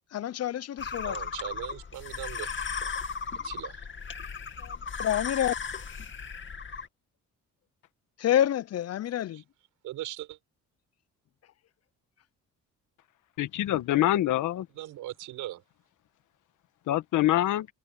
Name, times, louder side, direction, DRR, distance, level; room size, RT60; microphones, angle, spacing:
voice 1, 0.1-1.2 4.6-5.5 8.2-9.4, left 11 dB, 55° left, 0.7 m, -28 dB
sound 1, 0.8-6.9, left 5 dB, 40° left, 2.2 m, -36 dB
voice 2, 1.0-2.5 3.4-3.9 9.3-9.4 9.8-10.4 14.7-15.6, right 14 dB, 90° right, 5.0 m, -39 dB
voice 3, 13.4-14.7 16.9-17.7, left 14 dB, 80° left, 1.4 m, -25 dB
cardioid pair, 90°, 30 cm